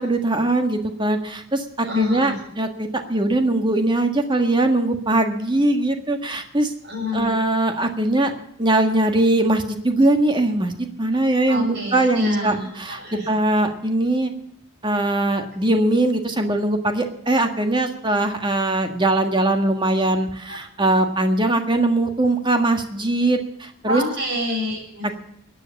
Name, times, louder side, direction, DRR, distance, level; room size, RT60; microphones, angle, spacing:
voice 1, 0.0-6.7 7.1-8.3 8.6-10.7 11.0-14.3 14.8-24.0, right 2 dB, 20° right, 5 dB, 1.6 m, -21 dB
voice 2, 1.8-2.4 6.8-7.3 11.5-13.3 20.5-20.6 23.9-25.1, left 1 dB, 55° right, 1 dB, 7.0 m, -27 dB
16.0 x 10.0 x 7.2 m, 0.75 s
head